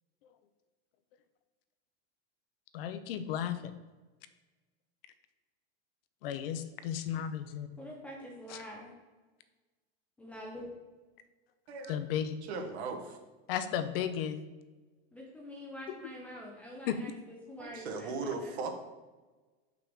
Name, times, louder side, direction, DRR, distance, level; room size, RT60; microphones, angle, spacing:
voice 1, 2.7-3.7 6.2-7.7 8.5-8.6 11.9-12.4 13.5-14.5 16.9-17.0, left 9 dB, 60° left, 11 dB, 0.6 m, -34 dB
voice 2, 7.8-9.0 10.2-10.7 15.1-18.7, equal, 5° left, -3 dB, 0.4 m, -46 dB
voice 3, 12.5-13.2 17.6-18.7, right 4 dB, 75° right, 4 dB, 1.3 m, -37 dB
6.3 x 5.8 x 3.6 m, 1.2 s
supercardioid pair, 180°, 32 cm